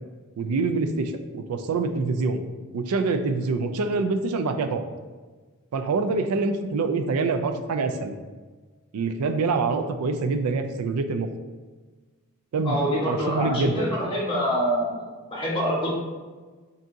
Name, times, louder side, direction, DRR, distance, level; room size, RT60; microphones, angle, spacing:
voice 1, 0.4-2.4 2.7-4.9 5.7-8.1 8.9-11.3 12.5-12.8 13.1-14.0, right 3 dB, 85° right, 7 dB, 0.4 m, -25 dB
voice 2, 12.6-15.9, equal, 25° left, -5 dB, 1.1 m, -26 dB
6.0 x 2.7 x 2.6 m, 1.3 s
head